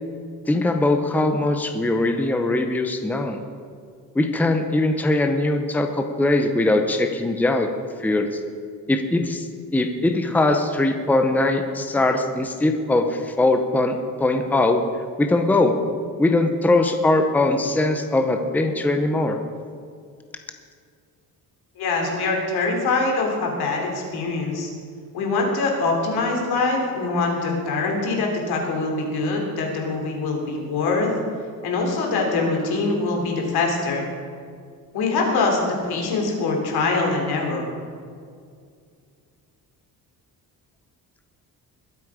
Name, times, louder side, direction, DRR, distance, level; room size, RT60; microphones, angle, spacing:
voice 1, 0.5-3.4 4.1-7.7 8.0-8.4 8.9-9.5 9.7-14.8 15.2-15.8 16.2-19.4, left 2 dB, 5° left, 6 dB, 0.7 m, -21 dB
voice 2, 21.8-24.7 25.1-31.1 31.6-34.0 34.9-37.7, left 3 dB, 90° left, 0 dB, 3.3 m, -23 dB
21.5 x 8.4 x 4.9 m, 2.2 s
cardioid pair, 165°, 37 cm